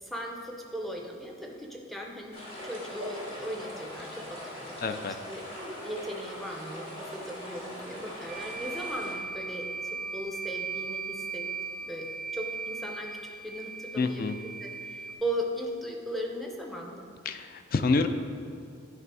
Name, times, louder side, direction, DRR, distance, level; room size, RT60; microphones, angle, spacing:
voice 1, 0.0-2.4 2.6-4.8 5.3-5.4 5.8-13.2 13.4-17.1, equal, ahead, 0 dB, 0.6 m, -38 dB
sound 1, 2.3-9.1, equal, 30° left, 1.5 m, -41 dB
voice 2, 4.8-5.2 14.0-14.4 17.3-18.1, left 3 dB, 45° left, 8 dB, 0.4 m, -27 dB
sound 2, 8.3-15.1, right 4 dB, 50° right, 0.4 m, -38 dB
9.4 x 3.4 x 4.6 m, 2.5 s
head